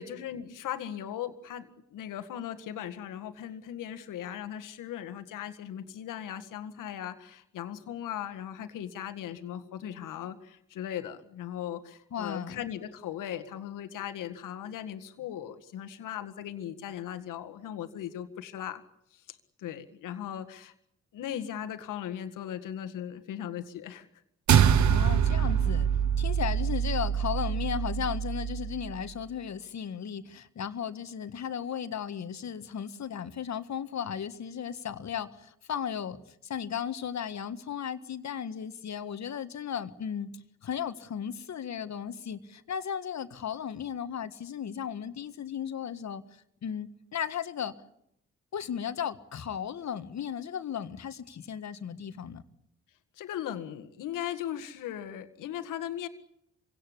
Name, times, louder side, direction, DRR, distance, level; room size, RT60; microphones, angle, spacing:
voice 1, 0.0-18.8 19.1-20.7 21.1-24.1 24.9-25.1 53.2-56.1, left 10 dB, 75° left, 1.9 m, -38 dB
voice 2, 12.1-12.6 24.9-25.9 26.2-36.2 36.4-40.3 40.6-47.7 48.5-52.4, left 8 dB, 60° left, 1.7 m, -35 dB
sound 1, 24.5-29.0, right 8 dB, 65° right, 1.2 m, -25 dB
25.0 x 17.5 x 9.9 m
supercardioid pair, 50°, 32 cm